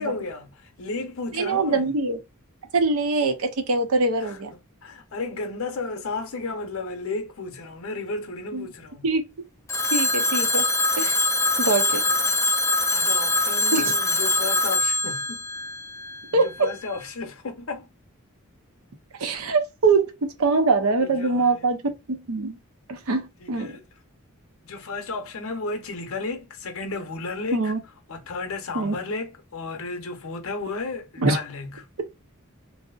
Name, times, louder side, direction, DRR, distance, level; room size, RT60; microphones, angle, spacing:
voice 1, 0.0-1.9 4.2-9.0 11.9-12.2 12.9-15.4 16.3-17.9 21.0-21.7 23.4-23.8 24.6-27.7 28.1-31.9, left 3 dB, 70° left, 0.7 m, -33 dB
voice 2, 1.3-2.2 2.7-4.5 8.5-8.7 9.0-9.2 9.9-10.7 11.0-11.2 11.6-12.0 13.7-13.9 16.3-16.7 19.2-21.8 22.1-22.6 22.9-23.7 27.5-27.8 28.7-29.0 31.2-31.4, right 3 dB, 75° right, 0.6 m, -23 dB
Telephone, 9.7-16.5, left 2 dB, 15° left, 0.3 m, -23 dB
2.6 x 2.0 x 2.3 m
head